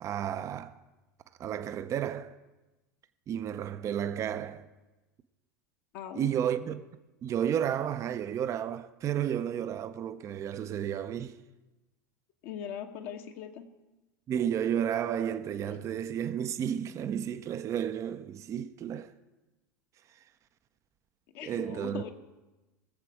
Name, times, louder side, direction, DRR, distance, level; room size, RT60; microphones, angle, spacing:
voice 1, 0.0-0.8 1.4-2.4 3.3-4.7 6.1-6.8 7.2-11.4 14.3-19.1 21.4-22.1, right 9 dB, 30° right, 0.6 m, -32 dB
voice 2, 5.9-6.3 12.4-13.6 21.3-22.1, left 8 dB, 55° left, 1.1 m, -40 dB
20.0 x 7.5 x 4.8 m
figure-of-eight pair, 85°, 10 cm